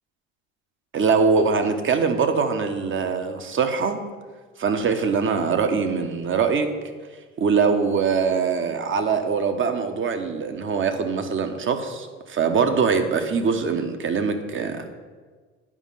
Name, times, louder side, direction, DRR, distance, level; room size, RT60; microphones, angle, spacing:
voice 1, 0.9-4.0 4.6-6.7 7.4-14.9, right 5 dB, 40° right, 7 dB, 1.2 m, -23 dB
9.9 x 5.2 x 5.8 m, 1.4 s
hypercardioid pair, 80°, 33 cm